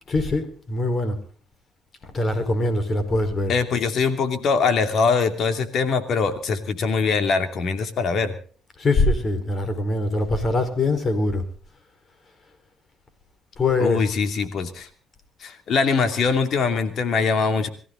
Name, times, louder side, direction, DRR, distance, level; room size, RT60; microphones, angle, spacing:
voice 1, 0.1-1.2 2.0-3.6 8.8-11.4 13.6-14.1, left 2 dB, 40° left, 10 dB, 4.5 m, -23 dB
voice 2, 3.5-8.3 13.8-14.9 15.4-17.7, left 5 dB, 60° left, 8 dB, 2.7 m, -22 dB
23.0 x 15.0 x 3.9 m, 0.41 s
supercardioid pair, 75°, 0 cm